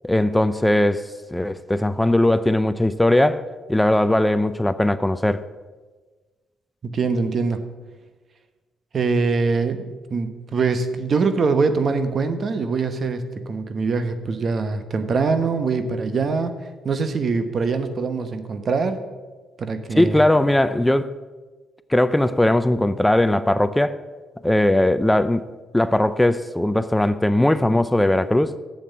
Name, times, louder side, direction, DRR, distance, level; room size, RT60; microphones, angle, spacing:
voice 1, 0.0-5.4 19.9-21.1 21.9-24.0 24.4-25.5 25.7-28.5, left 1 dB, 5° left, 0.4 m, -19 dB
voice 2, 6.8-7.6 8.9-16.6 16.8-19.0 19.6-20.2, right 4 dB, 50° right, 1.0 m, -23 dB
7.7 x 7.4 x 8.2 m
cardioid pair, 90°, 0 cm